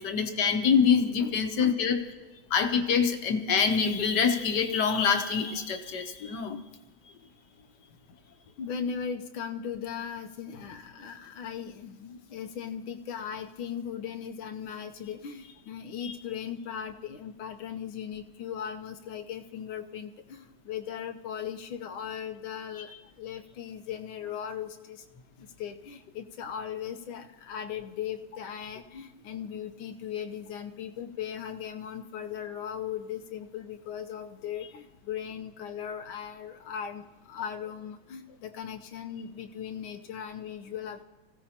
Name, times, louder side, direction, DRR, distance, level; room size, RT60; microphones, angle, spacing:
voice 1, 0.0-2.0 2.5-6.6 16.0-16.1, left 6 dB, 60° left, 6 dB, 1.6 m, -25 dB
voice 2, 1.2-1.7 8.6-25.0 25.4-41.0, left 8 dB, 80° left, 6 dB, 1.7 m, -38 dB
25.5 x 16.0 x 2.9 m, 1.1 s
omnidirectional pair, 2.2 m